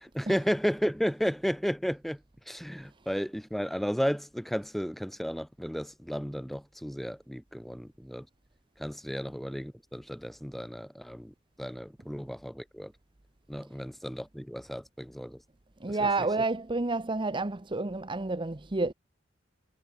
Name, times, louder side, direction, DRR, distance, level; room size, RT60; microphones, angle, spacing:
voice 1, 0.0-2.2 2.5-8.3 8.8-12.9 13.5-15.4 16.0-16.1, equal, ahead, 1.7 m, -33 dB
voice 2, 15.8-18.9, right 3 dB, 25° right, 0.9 m, -29 dB
head